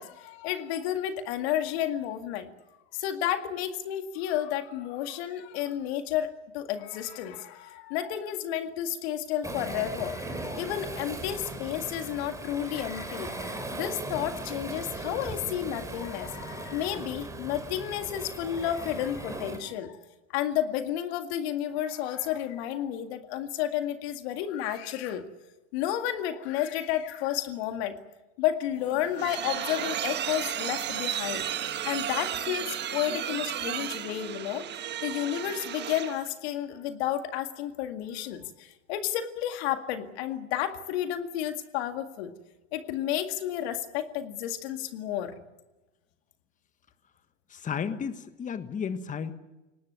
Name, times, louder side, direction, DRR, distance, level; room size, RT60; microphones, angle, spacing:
voice 1, 0.0-2.5 2.9-20.0 20.3-25.2 25.7-28.0 28.4-34.6 35.0-42.3 42.7-45.3, left 11 dB, 55° left, 7 dB, 2.1 m, -31 dB
Waves surf, 9.4-19.6, right 2 dB, 10° right, 4.1 m, -38 dB
sound 1, 28.8-36.3, right 10 dB, 30° right, 1.4 m, -33 dB
voice 2, 47.5-49.3, left 7 dB, 20° left, 10 dB, 1.5 m, -33 dB
22.5 x 19.0 x 9.6 m, 1.0 s
hypercardioid pair, 110°, 37 cm